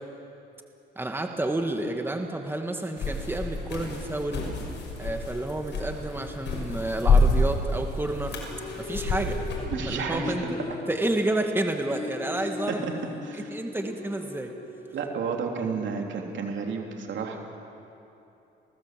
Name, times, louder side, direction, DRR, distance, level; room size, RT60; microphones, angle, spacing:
voice 1, 1.0-4.5 5.0-8.4 8.8-9.4 9.9-10.4 10.9-12.8 13.5-14.5, right 2 dB, 10° right, 4 dB, 2.0 m, -30 dB
sound 1, 3.0-9.7, left 2 dB, 65° left, 6.1 m, -27 dB
sound 2, 8.3-15.3, left 3 dB, 35° left, 2.8 m, -38 dB
voice 2, 9.7-10.6 12.4-12.9 13.2-13.5 14.9-17.6, right 5 dB, 70° right, 2 dB, 3.3 m, -32 dB
28.0 x 17.5 x 7.7 m, 2.8 s
cardioid pair, 90°, 20 cm